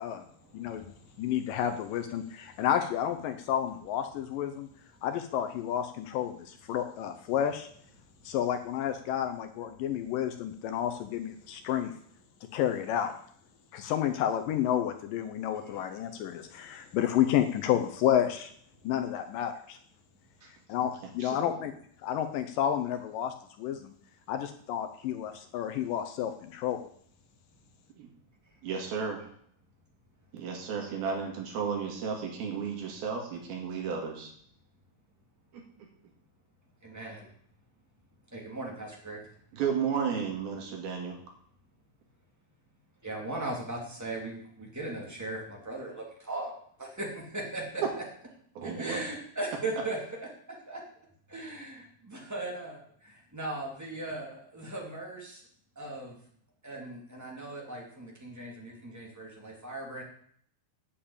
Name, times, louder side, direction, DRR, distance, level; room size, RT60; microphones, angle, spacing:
voice 1, 0.0-1.3 8.2-8.3 15.6-15.8 28.5-28.6 36.8-37.3 38.3-39.2 43.0-46.5 46.8-47.8 48.6-50.0 50.5-50.8 51.3-55.4 55.7-56.2 56.6-60.0, right 2 dB, 5° right, -2 dB, 2.4 m, -39 dB
voice 2, 0.5-0.9 1.2-4.7 5.0-7.7 8.3-11.9 12.5-13.1 13.7-18.5 18.8-19.8 20.7-21.7 22.0-23.9 24.3-26.8, left 10 dB, 75° left, 7 dB, 2.2 m, -30 dB
voice 3, 21.2-21.6 28.0-28.1 28.6-29.2 30.3-34.3 35.5-35.6 39.5-41.2 47.8-47.9 48.6-49.0, right 6 dB, 75° right, 1 dB, 4.1 m, -33 dB
8.6 x 7.7 x 8.6 m, 0.62 s
omnidirectional pair, 4.3 m